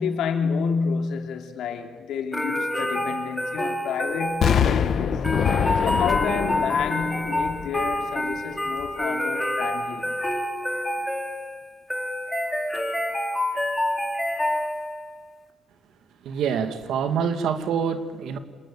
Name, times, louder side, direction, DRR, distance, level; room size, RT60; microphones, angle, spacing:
voice 1, 0.0-5.3 5.8-10.1, left 6 dB, 85° left, 2.9 m, -29 dB
sound 1, 2.3-15.1, left 1 dB, 5° left, 3.5 m, -27 dB
Explosion, 4.4-8.3 8.8-8.9, left 8 dB, 65° left, 1.2 m, -25 dB
voice 2, 16.2-18.4, right 7 dB, 85° right, 2.2 m, -26 dB
28.0 x 20.5 x 8.7 m
cardioid pair, 90°, 0 cm